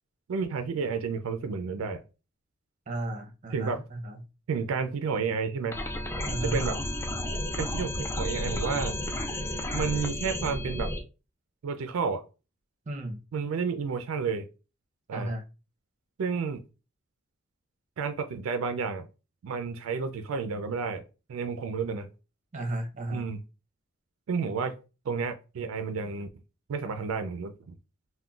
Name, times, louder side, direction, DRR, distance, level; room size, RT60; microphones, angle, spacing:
voice 1, 0.3-2.0 3.5-3.8 4.5-5.8 6.4-6.8 7.6-9.0 9.7-10.9 11.6-12.2 13.3-14.5 15.1-15.3 16.2-16.6 18.0-19.1 19.4-21.0 21.3-22.1 23.1-23.4 24.3-24.8 25.1-26.3 26.7-27.8, right 5 dB, 85° right, 0.4 m, -31 dB
voice 2, 2.9-4.2 6.3-6.6 12.9-13.2 15.1-15.4 22.5-23.2, right 1 dB, 35° right, 0.6 m, -34 dB
sound 1, 5.7-11.0, left 1 dB, 10° left, 0.3 m, -32 dB
3.6 x 2.2 x 2.3 m
head